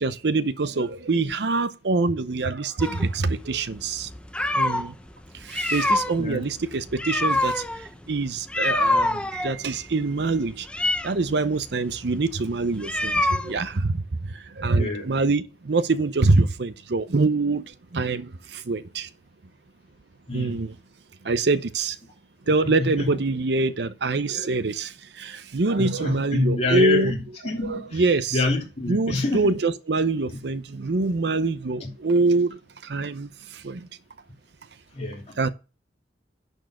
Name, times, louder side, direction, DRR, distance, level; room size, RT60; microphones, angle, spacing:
voice 1, 0.0-4.1 4.5-5.0 5.3-10.7 11.0-19.1 20.3-20.8 21.2-22.0 22.5-27.1 27.6-28.4 28.9-33.9 35.4-35.5, right 3 dB, 65° right, 0.7 m, -25 dB
sound 1, 2.8-4.9 5.4-13.8, left 2 dB, 5° left, 0.5 m, -26 dB
voice 2, 6.2-6.5 14.7-15.1 20.3-20.6 22.4-23.1 25.7-28.0 28.3-29.6 31.8-31.9 34.9-35.4, left 2 dB, 35° left, 3.1 m, -27 dB
10.5 x 4.6 x 6.3 m
head